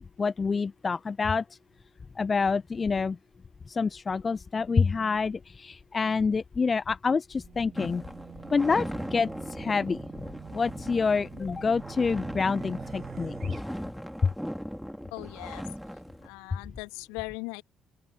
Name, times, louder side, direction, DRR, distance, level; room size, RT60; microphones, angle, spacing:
voice 1, 0.2-1.4 2.2-3.2 3.7-8.0 8.5-10.0 10.5-13.6 14.2-14.3, left 5 dB, 35° left, 0.8 m, -27 dB
Race car auto racing / Alarm, 7.4-13.6, right 8 dB, 50° right, 5.8 m, -45 dB
sound 1, 7.7-16.3, equal, ahead, 4.1 m, -39 dB
voice 2, 15.1-15.6 16.2-17.6, left 29 dB, 70° left, 2.4 m, -39 dB
open air
figure-of-eight pair, 45°, 0 cm